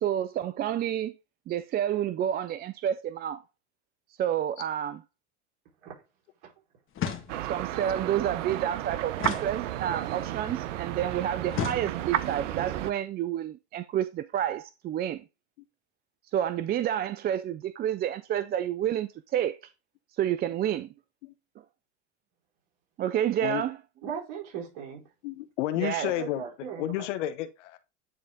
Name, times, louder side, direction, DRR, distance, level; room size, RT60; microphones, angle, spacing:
voice 1, 0.0-1.1 1.5-3.4 4.2-5.0 7.5-15.2 16.3-19.6 20.2-20.9 23.0-23.8 25.8-26.1, right 10 dB, 25° right, 0.4 m, -29 dB
sound 1, 6.9-7.7 9.2-10.1 11.5-12.4, left 7 dB, 35° left, 1.7 m, -35 dB
sound 2, 7.3-12.9, right 13 dB, 80° right, 0.8 m, -33 dB
voice 2, 24.0-25.0 26.2-27.1, right 7 dB, 60° right, 4.6 m, -38 dB
voice 3, 25.2-26.4 26.8-27.8, left 14 dB, 75° left, 1.0 m, -31 dB
9.3 x 3.9 x 3.6 m
supercardioid pair, 105°, 36 cm